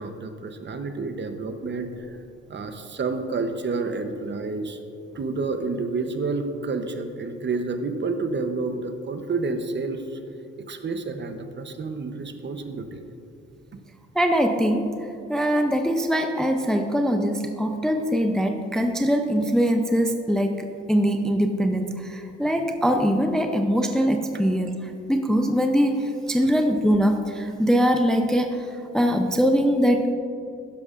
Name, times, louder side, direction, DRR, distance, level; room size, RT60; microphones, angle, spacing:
voice 1, 0.0-2.2 2.5-4.8 5.2-10.0 10.7-13.0, right 3 dB, 35° right, 7 dB, 0.8 m, -29 dB
voice 2, 14.1-30.1, equal, ahead, 5 dB, 0.5 m, -22 dB
12.0 x 10.5 x 2.5 m, 2.5 s
cardioid pair, 90°, 30 cm